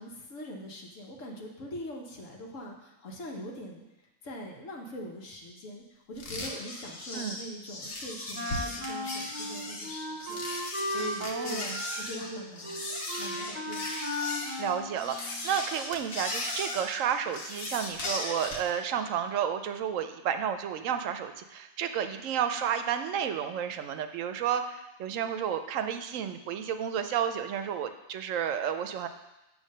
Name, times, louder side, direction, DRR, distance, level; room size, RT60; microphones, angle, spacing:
voice 1, 0.0-3.8 4.2-10.4 10.8-12.8 13.2-13.9, equal, 70° left, 0 dB, 1.5 m, -42 dB
sound 1, 6.2-18.7, left 2 dB, 90° left, 1.5 m, -37 dB
Wind instrument woodwind instrument, 8.3-15.6, left 1 dB, 20° right, 1.7 m, -36 dB
voice 2, 11.2-11.8 14.6-29.1, right 8 dB, 75° right, 8 dB, 1.0 m, -31 dB
8.3 x 3.2 x 6.5 m, 0.97 s
omnidirectional pair, 1.4 m